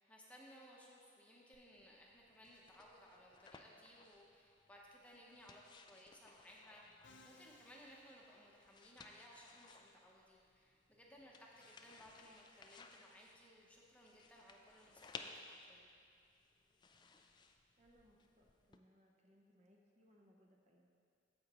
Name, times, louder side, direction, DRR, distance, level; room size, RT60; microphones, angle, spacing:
voice 1, 0.0-15.9, equal, 10° left, -3 dB, 0.8 m, -61 dB
sound 1, 1.5-18.8, left 4 dB, 25° left, 0.4 m, -60 dB
Musical instrument, 7.0-9.1, left 3 dB, 75° left, 0.6 m, -66 dB
voice 2, 17.8-20.9, equal, 40° right, -1 dB, 0.8 m, -70 dB
14.0 x 5.1 x 3.0 m, 2.3 s
head